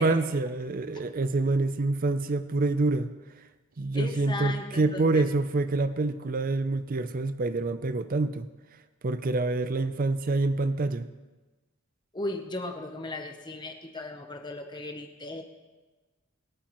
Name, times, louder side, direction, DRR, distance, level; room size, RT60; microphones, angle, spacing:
voice 1, 0.0-3.1 3.8-8.5 9.0-11.1, right 3 dB, 40° right, 11 dB, 0.5 m, -26 dB
voice 2, 3.9-5.2 12.1-15.4, left 2 dB, 20° left, 4 dB, 0.8 m, -36 dB
25.5 x 9.1 x 3.0 m, 1.2 s
head